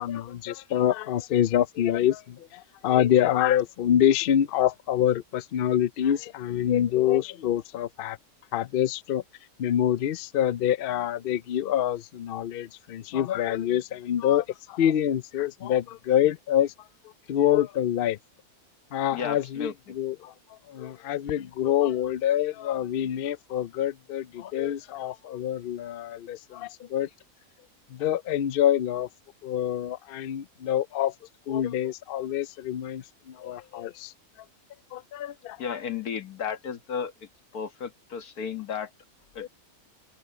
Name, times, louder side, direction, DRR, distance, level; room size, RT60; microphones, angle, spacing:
voice 1, 0.0-8.2 8.5-9.2 9.6-16.7 17.3-18.2 18.9-27.1 27.9-29.1 29.4-31.1 31.5-34.1 34.9-35.6 39.4-39.5, left 10 dB, 65° left, 0.5 m, -26 dB
voice 2, 19.1-19.7 35.6-37.3 37.5-38.9 39.4-39.5, left 7 dB, 85° left, 1.9 m, -33 dB
open air
omnidirectional pair, 1.6 m